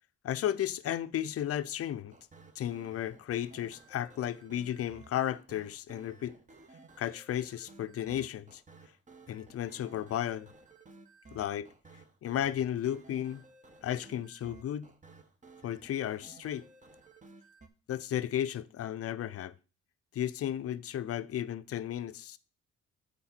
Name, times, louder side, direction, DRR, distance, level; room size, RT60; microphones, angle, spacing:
voice 1, 0.2-2.2 2.6-6.4 7.0-8.6 9.3-10.5 11.3-11.7 12.2-13.4 13.8-14.9 15.6-16.7 17.9-19.5 20.1-22.4, left 11 dB, 50° left, 0.5 m, -34 dB
sound 1, 2.1-17.7, right 3 dB, 25° right, 0.9 m, -56 dB
8.1 x 4.3 x 4.1 m
cardioid pair, 90°, 30 cm